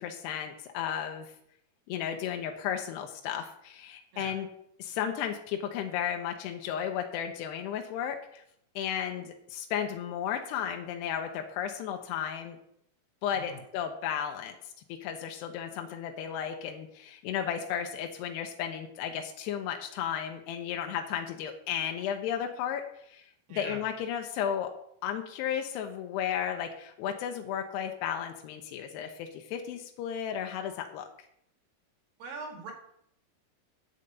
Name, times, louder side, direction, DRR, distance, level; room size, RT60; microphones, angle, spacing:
voice 1, 0.0-1.3 1.9-4.5 4.8-8.4 8.8-12.6 13.2-14.6 14.9-23.3 23.5-24.7 25.0-31.1, left 9 dB, 90° left, 5 dB, 2.9 m, -34 dB
voice 2, 23.5-23.8 32.2-32.7, right 3 dB, 65° right, 3 dB, 3.3 m, -42 dB
9.8 x 5.3 x 8.1 m, 0.72 s
omnidirectional pair, 4.8 m